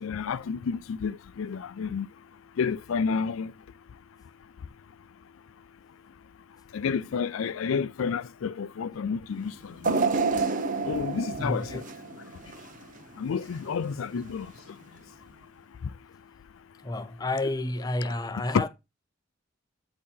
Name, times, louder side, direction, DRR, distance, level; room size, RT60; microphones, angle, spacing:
voice 1, 0.0-2.1 2.6-3.5 6.7-10.0 10.8-11.9 13.2-14.8 15.8-15.9, left 6 dB, 85° left, 0.4 m, -31 dB
sound 1, 9.8-13.0 13.4-13.6 14.6-14.7, right 4 dB, 40° right, 0.8 m, -29 dB
voice 2, 11.4-11.8 14.1-14.2 16.8-18.7, left 2 dB, 20° left, 0.6 m, -30 dB
8.5 x 2.9 x 5.4 m
head